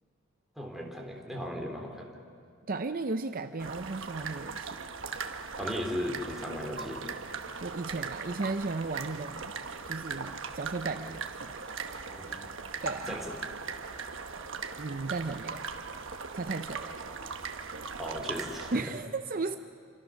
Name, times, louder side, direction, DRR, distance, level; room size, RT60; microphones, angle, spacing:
voice 1, 0.5-2.1 5.6-7.0 12.1-12.5 13.1-13.3 18.0-18.8, equal, ahead, -1 dB, 3.4 m, -37 dB
voice 2, 2.7-4.8 7.6-9.5 9.9-11.5 12.8-13.2 14.8-15.6 16.3-16.9 18.7-19.6, right 3 dB, 40° right, 8 dB, 0.6 m, -35 dB
sound 1, 3.6-18.8, right 5 dB, 65° right, 1.3 m, -39 dB
29.5 x 26.0 x 6.3 m, 2.2 s
head